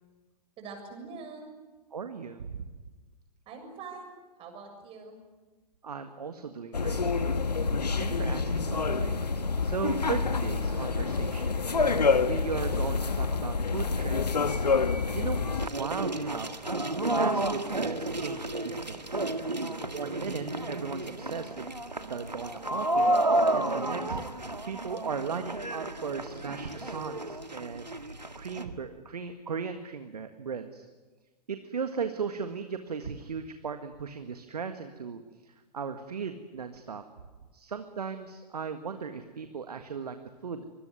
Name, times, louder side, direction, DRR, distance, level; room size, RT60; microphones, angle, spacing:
voice 1, 0.6-1.5 3.5-5.2, right 4 dB, 25° right, 4 dB, 7.2 m, -44 dB
voice 2, 1.9-2.7 5.8-7.0 8.0-9.2 9.6-14.7 15.1-19.2 19.9-30.9 31.5-37.0 37.5-40.2 40.4-40.7, right 6 dB, 70° right, 8 dB, 1.8 m, -37 dB
sound 1, 6.7-15.7, left 4 dB, 75° left, 1.4 m, -27 dB
sound 2, 15.6-28.6, right 1 dB, 90° right, 2.0 m, -31 dB
25.0 x 22.0 x 9.7 m, 1.3 s
figure-of-eight pair, 110°, 21 cm